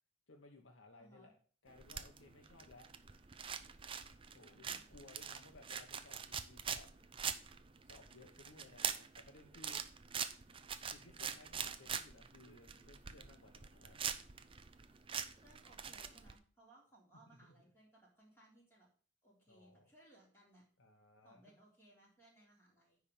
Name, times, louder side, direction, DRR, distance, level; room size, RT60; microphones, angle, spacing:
voice 1, 0.3-1.4 1.6-2.9 4.3-6.9 7.8-9.8 10.9-14.0 17.3-17.5 19.5-19.9 20.8-21.4, left 2 dB, 85° left, 2 dB, 1.1 m, -60 dB
voice 2, 0.9-1.3 4.4-4.8 15.4-18.9 19.2-20.6 21.2-23.0, right 1 dB, 10° left, -4 dB, 3.7 m, -65 dB
sound 1, 1.7-16.3, right 7 dB, 25° right, 0.5 m, -44 dB
10.0 x 3.6 x 7.0 m, 0.43 s
head